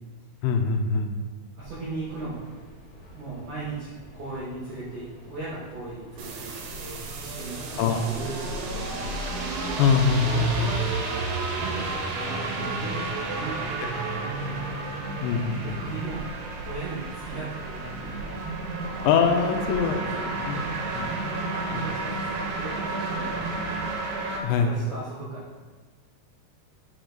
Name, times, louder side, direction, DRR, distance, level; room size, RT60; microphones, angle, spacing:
voice 1, 0.4-1.2 7.8-8.1 9.8-10.7 15.2-15.8 19.0-20.0 20.5-20.6 20.9-21.3 21.7-21.8 24.4-24.7, left 5 dB, 85° left, 5 dB, 2.7 m, -23 dB
voice 2, 1.5-2.5 3.1-3.9 4.1-9.1 10.2-14.5 15.6-18.4 19.4-20.8 21.5-23.9 24.5-25.7, right 3 dB, 70° right, -8 dB, 1.9 m, -38 dB
sound 1, 1.6-19.8, right 1 dB, 60° left, 3.0 m, -47 dB
sound 2, 6.2-24.4, right 3 dB, 85° right, 3.1 m, -32 dB
6.8 x 5.0 x 3.8 m, 1.3 s
omnidirectional pair, 5.2 m